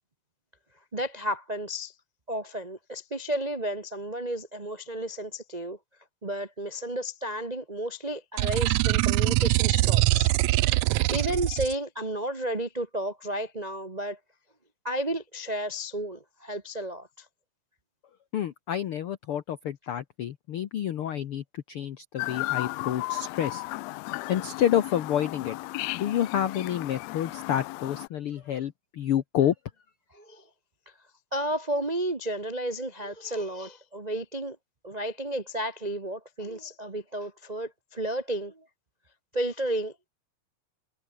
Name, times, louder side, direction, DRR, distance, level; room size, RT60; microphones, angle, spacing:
voice 1, 0.9-1.9 2.3-5.8 6.2-14.2 14.8-17.2 30.1-30.4 31.3-34.6 34.8-38.6 39.3-40.1, right 1 dB, 60° right, 0.4 m, -32 dB
sound 1, 8.4-11.7, right 20 dB, 80° right, 1.9 m, -23 dB
voice 2, 18.3-23.6 24.3-25.6 25.9-29.5, left 10 dB, 60° left, 1.6 m, -29 dB
Chirp tweet, 22.2-28.1, left 20 dB, 85° left, 1.5 m, -34 dB
omnidirectional pair, 3.5 m